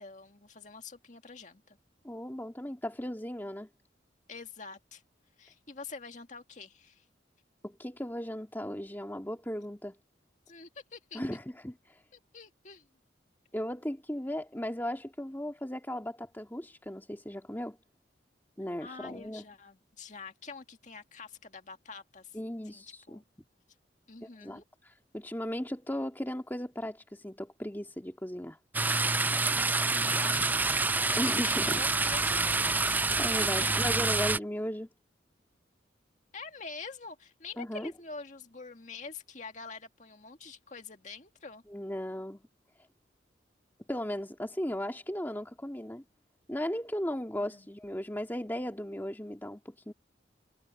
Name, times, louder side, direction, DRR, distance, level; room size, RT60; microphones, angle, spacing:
voice 1, 0.0-1.8 4.3-5.0 5.4-7.1 10.5-11.2 12.1-12.9 18.8-22.4 22.7-23.2 24.1-24.6 29.9-33.0 33.4-33.7 36.3-41.6 47.4-47.7, left 4 dB, 40° left, 2.0 m, -46 dB
voice 2, 2.0-3.7 7.6-10.0 11.1-12.0 13.5-17.8 18.6-19.4 22.3-23.2 24.4-28.6 31.2-31.8 33.2-34.9 37.6-37.9 41.7-42.4 43.9-46.0 46.5-49.9, equal, 10° left, 2.1 m, -36 dB
sound 1, 28.7-34.4, right 3 dB, 10° right, 0.3 m, -27 dB
head